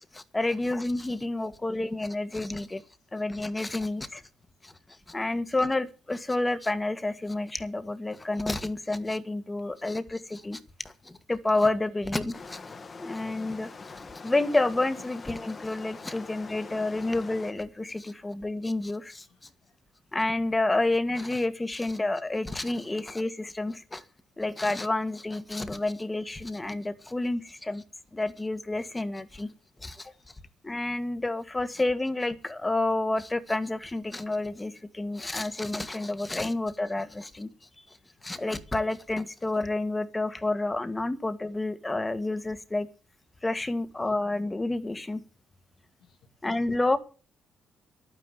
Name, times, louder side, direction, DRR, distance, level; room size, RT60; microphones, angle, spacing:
voice 1, 0.1-2.8 3.1-4.2 4.6-4.7 5.1-10.6 11.0-12.6 13.0-13.7 14.2-19.2 20.1-24.0 24.4-27.8 28.1-29.5 29.8-30.1 30.6-37.5 38.2-42.9 43.4-45.2 46.4-47.0, left 2 dB, 15° left, 1.7 m, -29 dB
sound 1, 12.3-17.5, left 4 dB, 35° left, 1.8 m, -44 dB
voice 2, 19.0-19.8 29.3-29.5 30.1-30.4 43.6-43.7 44.0-44.1 46.0-46.3, left 5 dB, 85° left, 2.7 m, -66 dB
11.5 x 9.5 x 8.1 m
cardioid pair, 90°, 0 cm